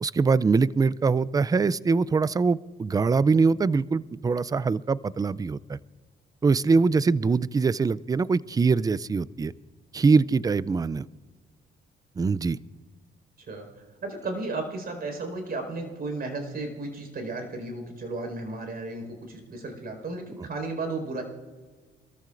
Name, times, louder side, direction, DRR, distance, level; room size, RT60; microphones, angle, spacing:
voice 1, 0.0-5.8 6.4-9.5 9.9-11.1 12.2-12.6, right 4 dB, 20° right, 19 dB, 0.4 m, -23 dB
voice 2, 14.0-21.2, right 3 dB, 50° right, 4 dB, 4.8 m, -34 dB
25.5 x 14.5 x 2.5 m, 1.4 s
cardioid pair, 90°, 20 cm